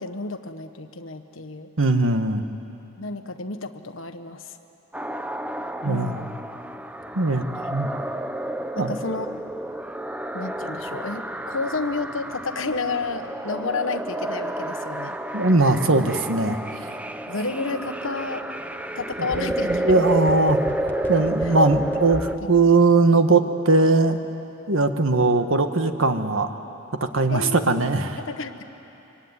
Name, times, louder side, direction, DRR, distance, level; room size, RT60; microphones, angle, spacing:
voice 1, 0.0-1.7 3.0-4.5 5.8-6.3 8.7-9.3 10.3-15.2 17.3-18.4 18.9-20.1 21.4-21.5 22.4-22.5 27.3-27.9 28.2-28.6, left 3 dB, 75° left, 8 dB, 1.4 m, -31 dB
voice 2, 1.8-2.4 5.8-6.3 7.1-7.4 7.7-8.0 8.8-8.9 15.3-16.6 19.2-20.6 21.1-24.2 24.7-26.5 27.1-28.2, right 3 dB, 75° right, 7 dB, 1.5 m, -20 dB
sound 1, 4.9-22.4, right 1 dB, 5° right, 0.6 m, -30 dB
sound 2, 19.0-22.4 22.7-22.8, equal, 10° left, 1.0 m, -37 dB
24.5 x 24.5 x 9.8 m, 3.0 s
head